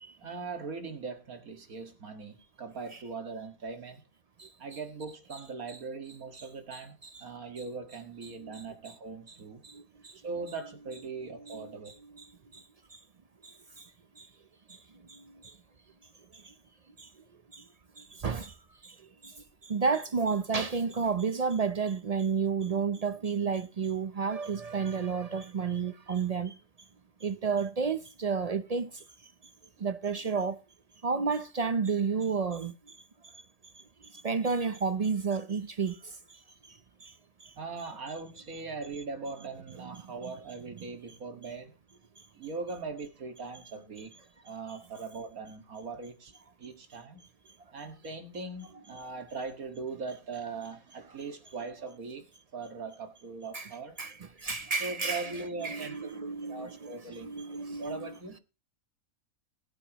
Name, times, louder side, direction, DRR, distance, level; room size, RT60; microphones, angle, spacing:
voice 1, 0.2-4.0 4.6-9.6 10.2-11.9 37.6-41.7 42.3-44.1 44.4-46.3 46.6-47.3 47.7-52.2 52.5-54.0 54.8-57.3 57.8-58.4, right 4 dB, 75° right, 2.3 m, -40 dB
voice 2, 4.4-4.8 5.3-5.4 5.7-5.8 6.3-7.3 8.3-8.6 9.3-9.4 9.6-10.2 11.4-12.6 12.9-13.0 13.4-13.9 14.2-14.3 14.7-15.6 16.3-16.5 17.0-17.1 17.5-17.6 18.0-18.6 18.8-26.6 27.2-29.0 29.8-30.6 31.0-33.0 33.2-33.4 33.7-36.4 36.7-37.1 37.4-37.5 39.7-40.3 40.8-40.9 44.7-44.8 53.5-58.2, right 5 dB, 55° right, 0.4 m, -32 dB
21.5 x 9.0 x 3.0 m
omnidirectional pair, 1.5 m